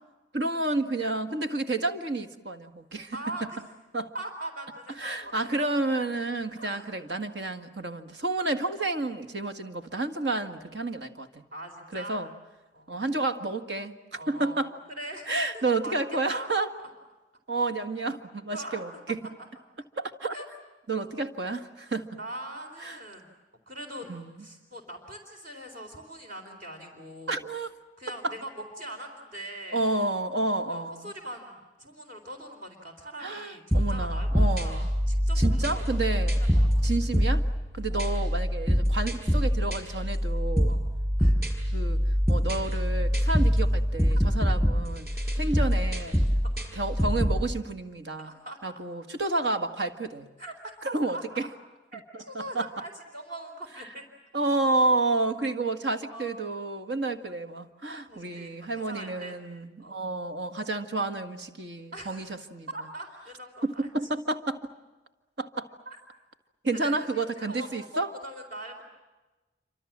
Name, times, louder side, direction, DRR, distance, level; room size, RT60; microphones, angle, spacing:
voice 1, 0.3-3.2 3.9-4.1 5.0-11.4 11.9-12.3 12.9-13.9 14.3-14.7 15.3-16.7 17.5-19.2 20.0-20.3 20.9-22.2 22.8-23.0 24.1-24.5 27.3-27.7 28.2-28.4 29.7-31.1 33.2-34.9 35.4-36.4 36.8-37.5 37.7-40.8 41.7-45.1 45.4-46.2 46.8-48.3 48.6-50.3 50.9-51.5 52.3-52.7 54.3-62.7 63.6-64.6 65.4-65.7 66.6-68.1, right 2 dB, 65° right, 8 dB, 1.9 m, -30 dB
voice 2, 3.1-3.6 4.1-5.3 6.6-6.9 11.5-12.2 12.7-13.1 14.2-14.6 15.0-16.0 16.3-16.5 16.8-16.9 18.5-18.8 20.3-20.5 21.4-21.6 22.2-23.3 23.7-24.1 24.4-27.4 28.0-29.9 30.7-36.9 37.9-38.1 40.7-40.8 41.2-41.4 46.5-46.6 48.3-48.6 50.4-50.6 50.8-51.5 51.9-52.0 52.3-54.0 56.1-56.4 58.1-59.4 59.8-60.0 61.9-62.3 62.7-63.9 65.9-66.0 66.8-68.8, right 1 dB, 45° right, 3 dB, 4.0 m, -42 dB
sound 1, 33.7-47.4, equal, 10° right, 5.4 m, -25 dB
27.5 x 26.0 x 7.4 m, 1.2 s
head